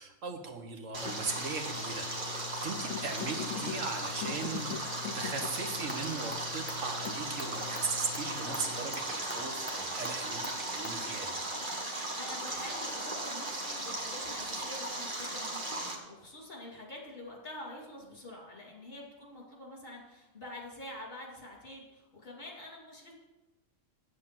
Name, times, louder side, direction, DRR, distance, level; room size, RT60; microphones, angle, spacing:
voice 1, 0.0-11.3, right 4 dB, 75° right, 4 dB, 1.6 m, -38 dB
sound 1, 0.9-8.9, left 9 dB, 75° left, 0.9 m, -43 dB
Stream, 0.9-16.0, right 2 dB, 40° right, 1.5 m, -37 dB
sound 2, 5.3-11.0, equal, 10° left, 1.4 m, -47 dB
voice 2, 12.1-23.1, left 1 dB, 45° left, -1 dB, 2.7 m, -46 dB
8.2 x 8.0 x 5.9 m, 1.0 s
omnidirectional pair, 1.3 m